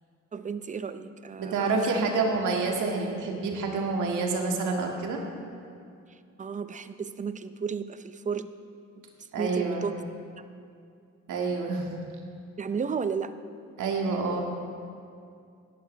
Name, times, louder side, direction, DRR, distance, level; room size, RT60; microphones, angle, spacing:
voice 1, 0.3-2.1 6.1-8.5 9.0-9.1 9.4-10.0 10.4-10.5 12.6-13.3, right 6 dB, 25° right, 11 dB, 0.6 m, -33 dB
voice 2, 1.4-5.2 9.3-9.8 11.3-11.9 13.8-14.5, right 3 dB, 80° right, 1 dB, 2.0 m, -28 dB
17.0 x 11.5 x 3.4 m, 2.4 s
cardioid pair, 90°, 30 cm